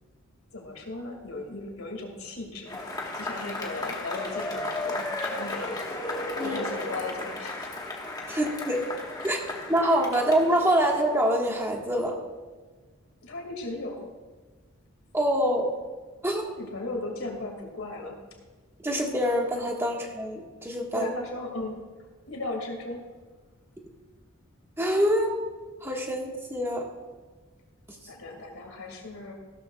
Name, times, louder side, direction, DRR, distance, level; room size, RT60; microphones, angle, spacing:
voice 1, 0.5-2.8 3.2-5.8 6.4-7.7 8.3-8.4 13.2-14.1 16.4-18.2 20.9-21.8 22.3-23.0 28.1-29.3, left 2 dB, 80° left, 2 dB, 2.3 m, -36 dB
Cheering / Applause / Crowd, 2.7-11.3, left 2 dB, 20° left, 1.5 m, -34 dB
voice 2, 8.3-8.9 9.2-12.1 15.1-15.7 16.2-16.5 18.8-21.1 24.8-25.4 25.8-26.8, equal, 10° right, 0 dB, 1.6 m, -25 dB
16.0 x 12.5 x 2.4 m, 1.4 s
head